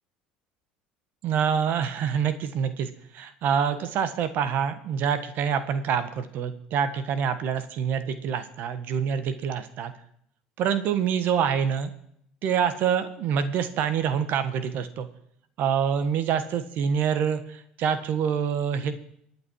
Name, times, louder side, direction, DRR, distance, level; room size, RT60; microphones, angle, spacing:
voice 1, 1.2-9.9 10.6-11.9 12.4-15.1 15.6-19.0, right 7 dB, 60° right, 11 dB, 1.5 m, -26 dB
24.5 x 8.8 x 4.8 m, 0.69 s
hypercardioid pair, 80°, 4 cm